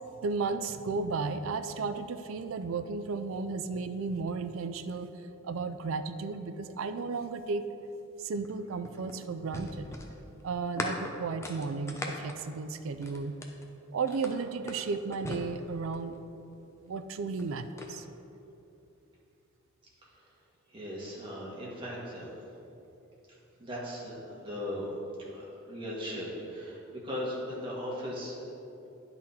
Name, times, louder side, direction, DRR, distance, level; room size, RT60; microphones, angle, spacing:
voice 1, 0.2-5.1 5.4-7.7 8.2-9.9 10.4-13.3 13.9-16.2 16.9-18.1, right 4 dB, 65° right, 10 dB, 0.4 m, -34 dB
sound 1, 8.4-13.7 14.1-16.2 17.1-17.9, left 1 dB, 15° left, 0.5 m, -40 dB
voice 2, 20.7-22.3 23.6-24.9 25.3-28.4, equal, 25° right, -6 dB, 1.6 m, -38 dB
10.0 x 4.1 x 4.2 m, 2.9 s
head